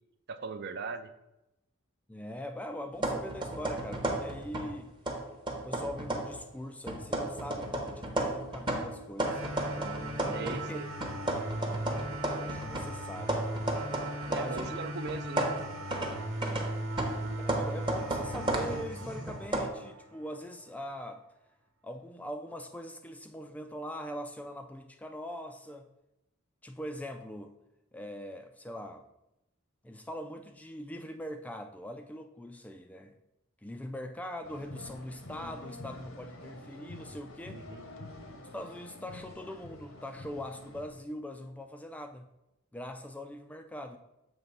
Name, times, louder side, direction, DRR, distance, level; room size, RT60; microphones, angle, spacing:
voice 1, 0.3-1.1 10.3-10.9 14.2-15.5 37.5-37.8, right 4 dB, 55° right, 10 dB, 0.5 m, -39 dB
voice 2, 2.1-4.9 5.6-10.8 12.3-13.4 14.3-14.8 17.4-21.2 21.8-25.9 26.6-27.5 27.9-29.1 29.8-33.2 33.6-37.6 38.5-42.3 42.7-44.0, equal, 5° left, 7 dB, 0.3 m, -42 dB
sound 1, 3.0-4.8 5.1-6.4 6.9-10.7 11.0-14.8 15.1-19.7, right 1 dB, 25° right, 0.8 m, -34 dB
sound 2, 9.3-20.2, right 1 dB, 85° right, 1.1 m, -38 dB
sound 3, 34.4-40.9, left 2 dB, 70° left, 0.9 m, -47 dB
7.1 x 3.3 x 5.5 m, 0.90 s
head